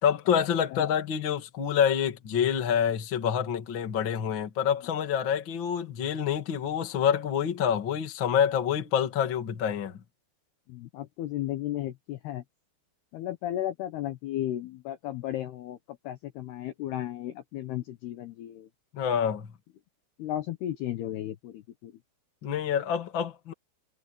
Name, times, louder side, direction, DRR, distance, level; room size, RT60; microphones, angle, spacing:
voice 1, 0.0-9.9 18.9-19.5 22.4-23.5, left 8 dB, 40° left, 1.8 m, -27 dB
voice 2, 10.7-12.4 13.1-18.7 20.2-21.9, left 13 dB, 75° left, 2.5 m, -34 dB
omnidirectional pair, 5.9 m